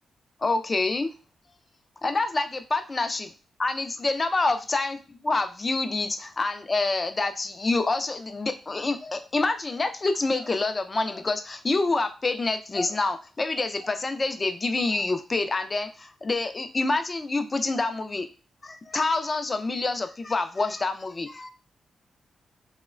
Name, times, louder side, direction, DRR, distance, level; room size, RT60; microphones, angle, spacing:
voice 1, 0.4-1.1 2.0-3.3 3.6-18.3 18.6-21.5, left 3 dB, 30° left, 9 dB, 0.3 m, -27 dB
2.9 x 2.1 x 2.4 m, 0.34 s
cardioid pair, 85°, 0 cm